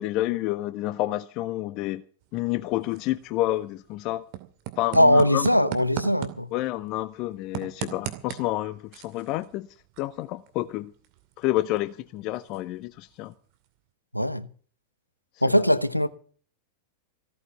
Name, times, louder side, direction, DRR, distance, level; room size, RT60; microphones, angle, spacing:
voice 1, 0.0-2.0 2.3-4.3 4.8-5.7 6.5-9.7 10.0-10.9 11.4-13.3, left 16 dB, 40° left, 0.6 m, -29 dB
sound 1, 2.2-13.9, right 14 dB, 45° right, 2.5 m, -41 dB
voice 2, 4.9-6.5 14.1-14.5 15.4-16.1, equal, 90° left, 0.9 m, -20 dB
16.0 x 9.6 x 7.1 m
figure-of-eight pair, 90°, 0 cm